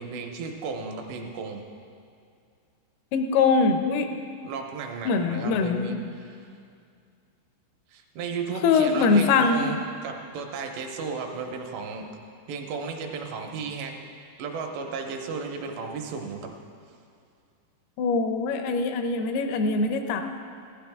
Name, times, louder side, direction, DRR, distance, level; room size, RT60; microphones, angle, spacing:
voice 1, 0.0-1.6 4.4-6.4 7.9-12.1 12.5-14.0 14.4-16.5, right 5 dB, 80° right, 3 dB, 2.9 m, -34 dB
voice 2, 3.1-4.1 5.1-6.0 8.6-9.7 18.0-20.2, left 4 dB, 80° left, 6 dB, 2.3 m, -23 dB
16.0 x 12.5 x 3.5 m, 2.3 s
omnidirectional pair, 5.3 m